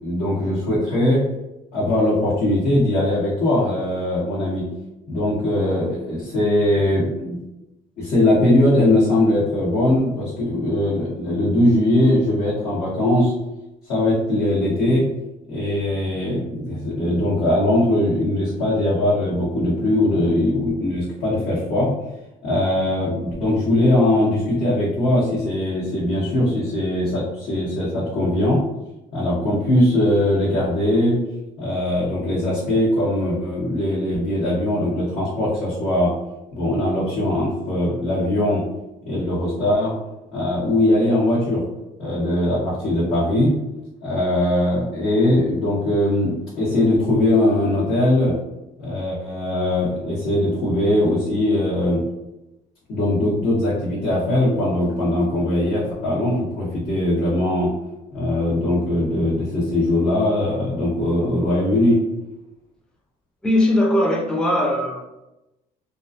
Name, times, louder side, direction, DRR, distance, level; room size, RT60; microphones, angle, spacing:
voice 1, 0.0-1.2 1.7-4.7 5.1-7.4 8.0-13.3 13.9-15.0 15.5-21.9 22.4-28.6 29.1-31.2 31.6-36.1 36.5-38.6 39.1-39.9 40.3-41.6 42.0-43.5 44.0-48.3 48.8-52.0 52.9-57.7 58.1-62.0, left 1 dB, 75° left, -10 dB, 1.0 m, -20 dB
voice 2, 63.4-65.0, left 1 dB, 5° left, 1 dB, 0.3 m, -19 dB
2.4 x 2.2 x 2.4 m, 0.94 s
cardioid pair, 110°, 17 cm